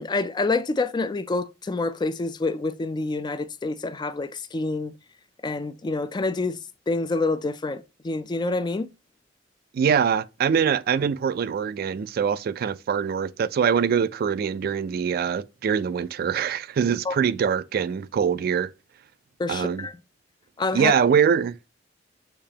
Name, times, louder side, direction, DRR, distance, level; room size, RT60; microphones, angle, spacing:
voice 1, 0.0-4.9 5.4-6.6 6.9-8.9 17.1-17.2 19.4-19.9 20.6-21.0, left 3 dB, 25° left, 0.3 m, -27 dB
voice 2, 9.7-18.7 19.5-19.9 20.7-21.6, right 7 dB, 55° right, 0.3 m, -23 dB
6.7 x 2.9 x 2.8 m
head